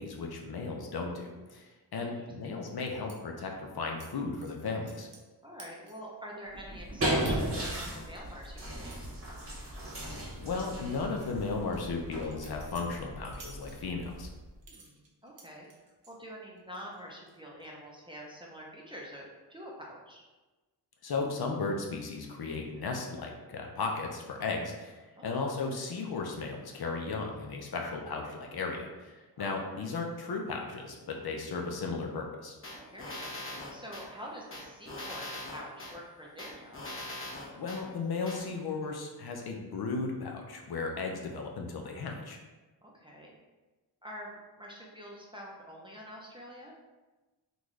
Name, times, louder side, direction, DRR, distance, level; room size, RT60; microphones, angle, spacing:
voice 1, 0.0-5.1 10.4-14.3 21.0-32.6 37.6-42.4, left 4 dB, 60° left, 1 dB, 0.6 m, -35 dB
sound 1, 3.1-3.2 4.0-4.1 4.4-5.3 5.6-6.1 6.6-6.7 7.3-7.4 7.8-10.1 10.4-10.5 11.0-14.1 14.6-16.2 16.6-17.0 17.3-17.7, right 4 dB, 85° right, 0.8 m, -53 dB
voice 2, 5.4-9.1 14.7-15.7 16.1-20.2 25.2-25.5 29.4-29.7 32.7-36.8 42.8-43.3 44.0-46.7, equal, 10° right, -3 dB, 0.6 m, -46 dB
sound 2, 6.5-14.6, right 1 dB, 30° right, 1.0 m, -36 dB
sound 3, 32.6-34.1 34.5-35.9 36.4-37.8 38.3-38.4, left 1 dB, 30° left, 0.9 m, -41 dB
3.8 x 2.4 x 3.1 m, 1.2 s
wide cardioid pair, 100°, 42 cm